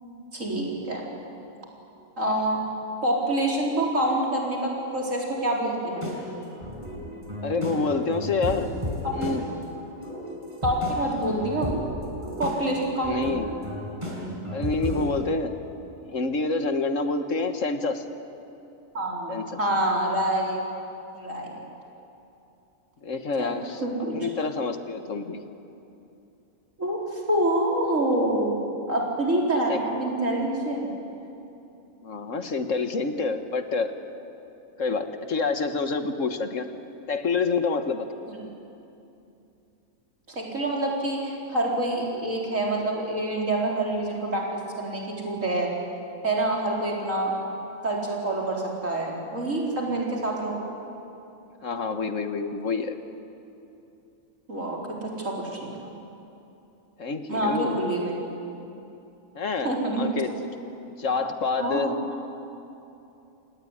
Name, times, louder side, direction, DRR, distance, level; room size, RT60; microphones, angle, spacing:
voice 1, 0.3-1.0 2.2-2.6 3.0-6.1 9.0-9.3 10.6-11.8 12.4-13.4 18.9-20.6 21.1-21.5 23.4-24.2 26.8-30.9 38.3-38.4 40.3-45.7 46.2-47.4 47.8-50.6 54.5-55.7 57.3-58.2 59.6-60.1 61.6-61.9, right 1 dB, 65° right, -2 dB, 4.9 m, -27 dB
sound 1, 5.9-15.1, equal, 20° right, 5.8 m, -34 dB
voice 2, 7.4-8.7 9.1-9.4 13.0-13.5 14.5-15.5 16.1-18.0 19.3-19.6 23.0-23.8 24.1-25.4 29.7-29.8 32.0-33.9 34.8-36.7 37.1-38.1 51.6-52.9 57.0-57.9 59.3-60.5 61.0-62.0, left 4 dB, 65° left, 8 dB, 1.7 m, -27 dB
28.0 x 19.0 x 9.9 m, 2.8 s
omnidirectional pair, 1.5 m